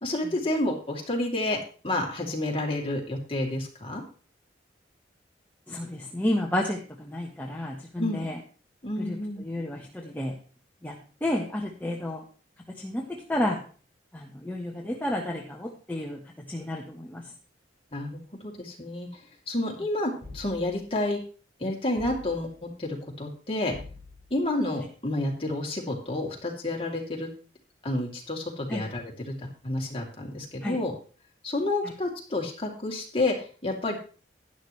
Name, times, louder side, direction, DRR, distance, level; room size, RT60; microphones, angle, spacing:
voice 1, 0.0-1.6 1.8-4.0 8.0-8.3 8.8-9.4 17.9-19.1 19.5-21.2 21.6-23.7 24.3-27.3 27.8-30.9 31.4-34.0, left 2 dB, 30° left, 0 dB, 2.9 m, -30 dB
voice 2, 5.7-8.4 9.0-10.4 10.8-12.2 12.7-13.6 14.1-16.2 16.5-17.2 28.7-28.9 30.6-30.8, left 1 dB, 10° left, -1 dB, 1.2 m, -31 dB
sound 1, 20.2-21.0 22.0-22.7 23.7-24.5, left 2 dB, 30° right, 6.2 m, -45 dB
11.5 x 11.0 x 3.2 m, 0.39 s
head